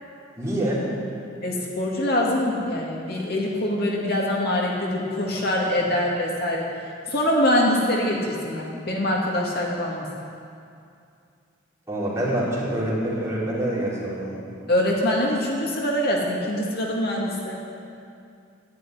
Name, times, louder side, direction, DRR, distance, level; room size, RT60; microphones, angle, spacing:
voice 1, 0.4-0.8 11.9-14.4, right 1 dB, 15° right, -9 dB, 4.5 m, -26 dB
voice 2, 1.4-6.7 7.1-10.1 14.7-17.6, left 1 dB, 55° left, -2 dB, 2.1 m, -24 dB
11.5 x 10.5 x 9.5 m, 2.5 s
head